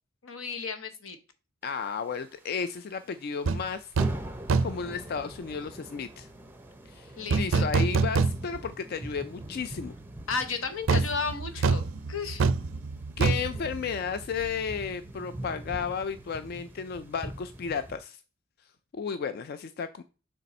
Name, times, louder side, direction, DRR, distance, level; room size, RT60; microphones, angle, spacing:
voice 1, 0.2-1.2 7.2-7.7 10.3-12.5, left 4 dB, 80° left, 8 dB, 0.9 m, -33 dB
voice 2, 1.6-3.9 4.6-6.3 6.9-9.9 10.9-11.0 13.2-18.2 18.9-20.0, left 6 dB, 50° left, 11 dB, 0.3 m, -33 dB
sound 1, 1.8-2.8 3.1-3.3 3.6-3.7 4.0-18.0, right 1 dB, 10° right, 0.5 m, -44 dB
sound 2, 3.5-3.6 4.0-4.2 4.5-4.9 7.3-8.7 9.1-9.2 10.9-14.5 14.8-14.9, right 4 dB, 70° right, 0.4 m, -26 dB
6.7 x 3.4 x 4.2 m, 0.35 s
head